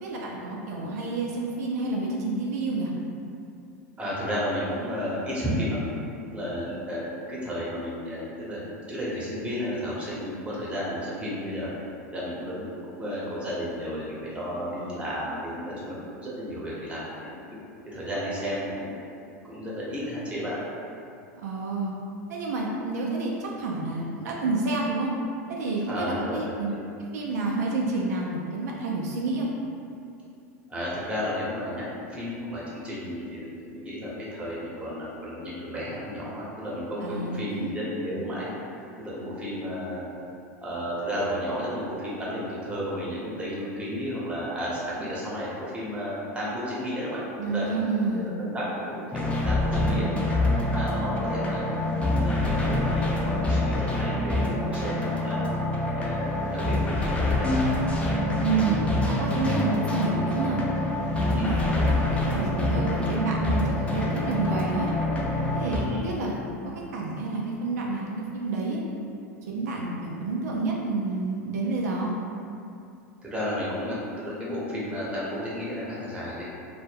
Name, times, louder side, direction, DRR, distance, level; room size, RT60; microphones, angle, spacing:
voice 1, 0.0-2.9 21.4-21.9 22.3-25.1 25.5-26.7 27.1-29.5 37.0-37.7 38.2-38.3 47.4-48.3 49.8-50.2 58.4-58.8 59.1-60.6 61.2-61.8 62.2-64.9 65.5-68.8 69.5-72.1, right 3 dB, 75° right, -2 dB, 0.4 m, -29 dB
voice 2, 4.0-5.8 6.3-8.6 8.9-11.7 12.1-17.4 17.8-19.0 19.4-20.6 25.9-26.4 26.7-26.8 30.7-38.5 39.0-40.0 40.6-47.2 47.5-48.1 48.4-50.1 50.7-51.6 52.2-55.4 55.9-57.7 61.3-61.9 65.7-66.0 73.2-76.4, equal, 15° right, -7 dB, 0.8 m, -33 dB
sound 1, 49.1-65.8, left 1 dB, 15° left, 0.4 m, -26 dB
2.1 x 2.1 x 3.2 m, 2.5 s
hypercardioid pair, 100°, 9 cm